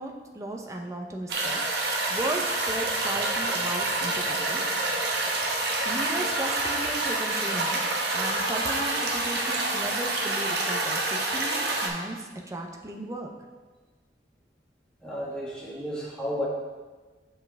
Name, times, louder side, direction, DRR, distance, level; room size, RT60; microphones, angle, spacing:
voice 1, 0.0-1.6 2.1-4.6 5.8-7.8 8.1-13.3, right 1 dB, 20° right, 1 dB, 0.7 m, -35 dB
sound 1, 1.3-11.9, right 2 dB, 65° right, 1.0 m, -27 dB
voice 2, 15.0-16.5, equal, 5° left, -6 dB, 1.5 m, -32 dB
7.2 x 5.7 x 3.4 m, 1.3 s
head